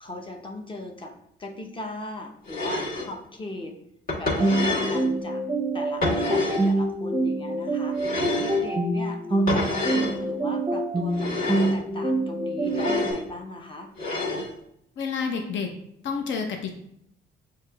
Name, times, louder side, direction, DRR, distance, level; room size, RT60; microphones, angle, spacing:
voice 1, 0.0-1.1 1.4-3.7 4.2-5.4 5.7-8.0 8.4-13.9, left 2 dB, 25° left, 2 dB, 0.8 m, -37 dB
sound 1, 2.5-3.1 4.1-5.1 6.0-6.7 8.0-8.6 9.5-10.2 11.1-11.8 12.7-13.2 14.0-14.5, left 2 dB, 45° left, 1.5 m, -28 dB
sound 2, 4.4-13.1, right 2 dB, 15° right, 0.6 m, -26 dB
voice 2, 15.0-15.7 16.0-16.7, left 5 dB, 70° left, 3 dB, 0.7 m, -29 dB
6.5 x 2.9 x 2.3 m, 0.74 s
cardioid pair, 90°, 20 cm